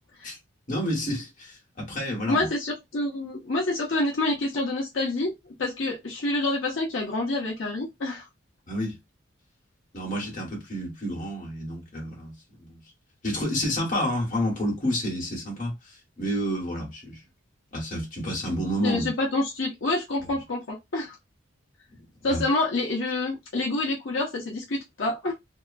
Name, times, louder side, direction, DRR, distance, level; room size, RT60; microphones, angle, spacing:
voice 1, 0.7-2.5 8.7-9.0 9.9-12.8 13.2-17.2 17.7-19.1 20.2-20.3 22.2-22.5, equal, 40° left, 1.3 m, -30 dB
voice 2, 2.3-5.3 5.6-8.3 18.8-21.1 22.2-25.3, left 2 dB, 70° left, 0.8 m, -27 dB
2.8 x 2.2 x 2.4 m
head